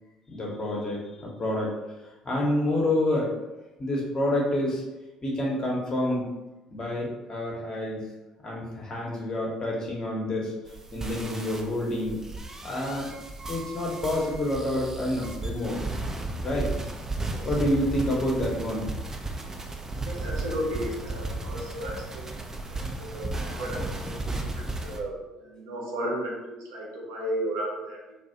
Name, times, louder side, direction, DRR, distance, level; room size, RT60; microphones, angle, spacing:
voice 1, 0.3-1.7 2.2-3.3 3.8-4.8 5.2-6.3 6.7-8.0 8.4-10.5 10.9-12.2 12.6-13.1 13.5-15.8 16.4-16.7 17.4-18.9 24.4-24.5, left 1 dB, 30° left, -3 dB, 0.9 m, -28 dB
sound 1, 10.7-25.0, right 2 dB, 20° right, 0.4 m, -34 dB
voice 2, 20.0-22.3 22.7-28.2, right 1 dB, 75° right, -3 dB, 0.6 m, -34 dB
2.3 x 2.0 x 2.7 m, 1.0 s
hypercardioid pair, 55°, 2 cm